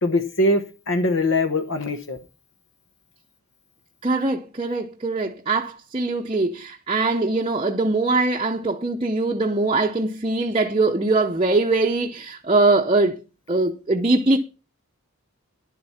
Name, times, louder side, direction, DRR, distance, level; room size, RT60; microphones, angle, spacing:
voice 1, 0.0-2.2, left 1 dB, 60° left, 1.1 m, -22 dB
voice 2, 4.0-13.2 13.5-14.4, right 2 dB, 25° right, 0.8 m, -22 dB
11.0 x 7.7 x 5.7 m
head